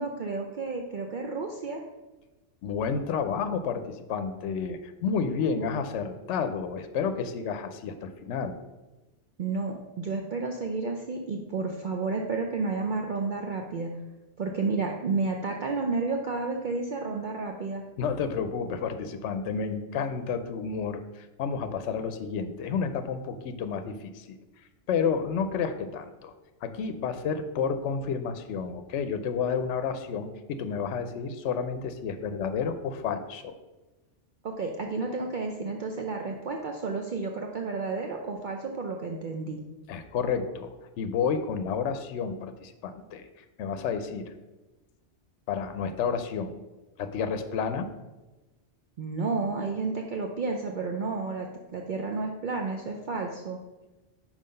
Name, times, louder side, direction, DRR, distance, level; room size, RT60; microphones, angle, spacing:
voice 1, 0.0-1.8 9.4-13.9 14.4-17.8 34.4-39.6 49.0-53.6, right 3 dB, 55° right, 2 dB, 0.6 m, -31 dB
voice 2, 2.6-8.6 18.0-26.3 26.6-33.5 39.9-44.3 45.5-46.6 47.0-47.9, left 6 dB, 75° left, 9 dB, 0.9 m, -31 dB
5.6 x 4.8 x 5.2 m, 1.1 s
omnidirectional pair, 1.2 m